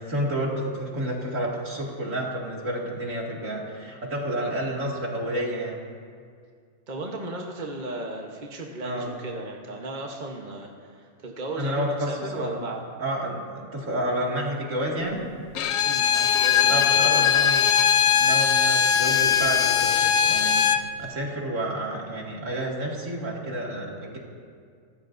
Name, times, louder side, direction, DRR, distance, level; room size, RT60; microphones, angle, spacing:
voice 1, 0.0-5.8 8.8-9.1 11.5-12.6 13.0-15.2 16.5-17.7 18.1-24.2, right 1 dB, 60° right, -3 dB, 2.6 m, -30 dB
voice 2, 6.9-12.8 15.8-17.5, right 2 dB, 35° right, 0 dB, 1.1 m, -35 dB
Bowed string instrument, 15.5-20.9, left 8 dB, 65° left, 1.0 m, -20 dB
24.5 x 13.5 x 2.6 m, 2.1 s
omnidirectional pair, 1.5 m